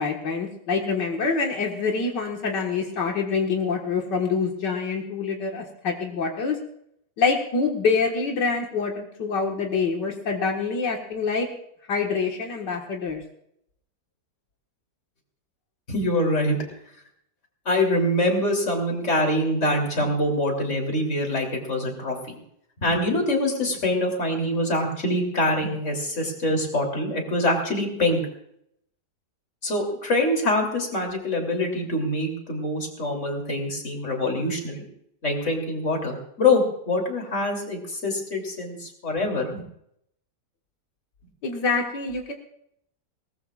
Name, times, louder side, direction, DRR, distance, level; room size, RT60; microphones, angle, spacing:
voice 1, 0.0-6.6 7.2-11.5 11.9-13.2 41.4-42.3, left 4 dB, 90° left, 1 dB, 2.3 m, -26 dB
voice 2, 15.9-16.6 17.7-22.4 22.8-28.2 29.6-34.9 35.2-39.6, left 1 dB, 45° left, 2 dB, 3.6 m, -24 dB
21.5 x 19.0 x 2.5 m, 0.73 s
omnidirectional pair, 1.8 m